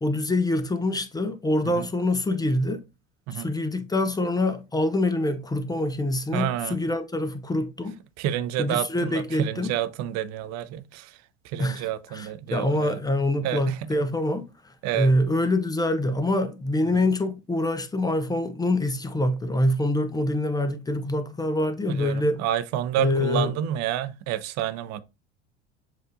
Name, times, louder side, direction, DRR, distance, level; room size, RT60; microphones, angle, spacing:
voice 1, 0.0-2.8 3.3-8.0 8.6-9.7 11.6-22.4 23.0-23.5, left 1 dB, 10° left, 0.5 m, -25 dB
voice 2, 6.3-6.8 8.2-11.1 11.5-13.0 13.4-13.9 14.8-15.1 21.9-25.0, right 12 dB, 50° right, 0.6 m, -29 dB
7.3 x 2.5 x 2.6 m
hypercardioid pair, 75°, 35 cm